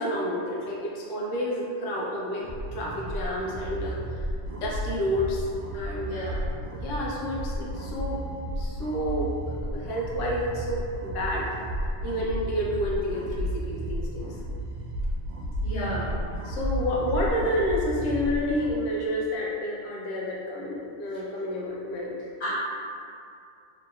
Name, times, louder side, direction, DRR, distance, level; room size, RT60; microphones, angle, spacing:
voice 1, 0.0-2.5 2.7-4.0 4.6-5.5 5.7-8.2 8.5-11.5 12.0-14.3 16.4-22.3, left 1 dB, 90° left, -4 dB, 1.0 m, -30 dB
sound 1, 2.3-18.7, right 1 dB, 75° right, 1.0 m, -33 dB
voice 2, 6.0-6.4 15.6-16.2 22.4-22.5, left 1 dB, 60° left, -10 dB, 1.3 m, -32 dB
3.0 x 2.9 x 2.3 m, 2.4 s
omnidirectional pair, 1.3 m